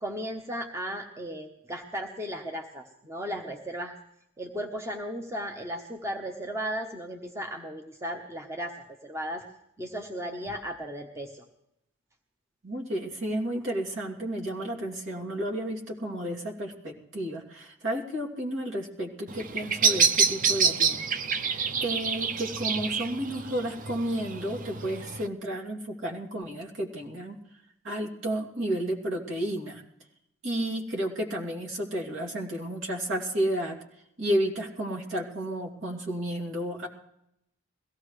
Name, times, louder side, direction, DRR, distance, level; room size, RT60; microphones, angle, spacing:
voice 1, 0.0-4.0 4.4-9.5 9.8-11.4, equal, 15° right, 3 dB, 1.0 m, -35 dB
voice 2, 12.6-21.1 21.8-27.4 27.8-29.8 30.4-33.8 34.2-36.9, right 1 dB, 60° right, -1 dB, 2.8 m, -32 dB
Bird vocalization bird call bird song, 19.3-25.3, right 6 dB, 40° right, 0.6 m, -27 dB
22.0 x 16.5 x 3.2 m, 0.78 s
head